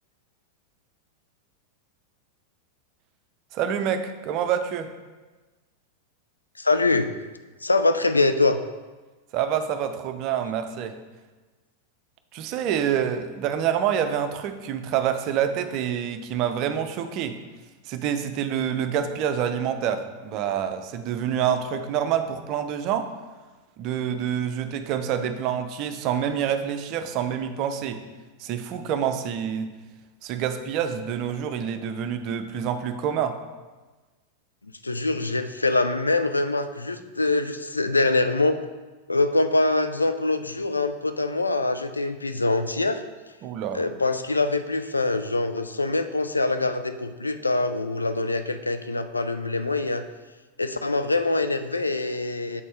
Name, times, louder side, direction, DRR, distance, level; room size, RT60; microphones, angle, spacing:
voice 1, 3.5-4.9 9.3-11.0 12.3-17.4 17.9-23.1 23.8-28.0 28.4-29.7 30.2-33.4 43.4-43.8, right 8 dB, 40° right, 8 dB, 0.5 m, -27 dB
voice 2, 6.6-7.1 7.6-8.6 34.6-38.6 39.1-43.0 43.7-50.0 50.6-52.6, left 2 dB, 80° left, 9 dB, 0.3 m, -24 dB
7.0 x 4.2 x 3.4 m, 1.2 s
figure-of-eight pair, 90°, 0 cm